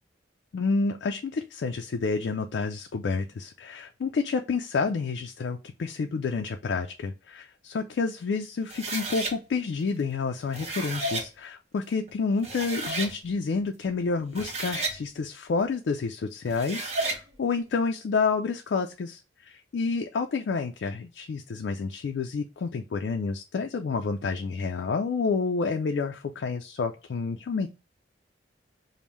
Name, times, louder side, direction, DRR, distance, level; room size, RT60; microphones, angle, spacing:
voice 1, 0.5-27.7, left 4 dB, 70° left, 5 dB, 0.3 m, -29 dB
sound 1, 8.7-9.3 10.3-11.3 12.1-12.2 12.4-13.1 14.2-15.0 16.5-17.2, right 2 dB, 35° right, 0.8 m, -32 dB
5.2 x 2.1 x 3.0 m, 0.30 s
head